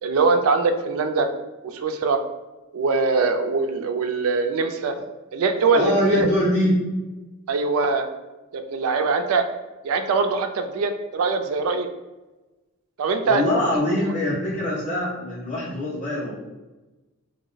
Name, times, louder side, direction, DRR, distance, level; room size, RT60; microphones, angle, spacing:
voice 1, 0.0-1.3 1.6-2.2 2.7-4.9 5.3-6.3 7.5-8.1 8.5-9.4 9.8-11.9 13.0-13.4 14.0-14.1, right 4 dB, 75° right, 6 dB, 0.3 m, -22 dB
voice 2, 5.7-6.8 13.2-16.3, left 1 dB, 35° left, -6 dB, 1.1 m, -23 dB
2.8 x 2.0 x 3.9 m, 1.1 s
head